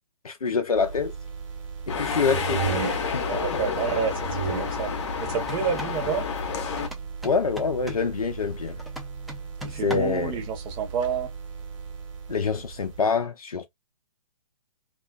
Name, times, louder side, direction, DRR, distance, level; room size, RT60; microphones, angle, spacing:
voice 1, 0.2-1.1 1.9-2.6 3.1-3.2 7.2-8.8 9.8-10.3 12.3-13.7, left 5 dB, 85° left, 0.5 m, -25 dB
sound 1, 0.8-13.0, right 6 dB, 60° right, 1.1 m, -36 dB
sound 2, 1.9-6.9, left 6 dB, 50° left, 0.7 m, -30 dB
voice 2, 3.2-4.9 5.2-6.3 9.6-11.3, right 6 dB, 25° right, 0.7 m, -29 dB
sound 3, 5.4-6.0 6.8-8.1 8.8-10.2, left 1 dB, ahead, 0.3 m, -40 dB
2.3 x 2.3 x 2.2 m
figure-of-eight pair, 130°, 18 cm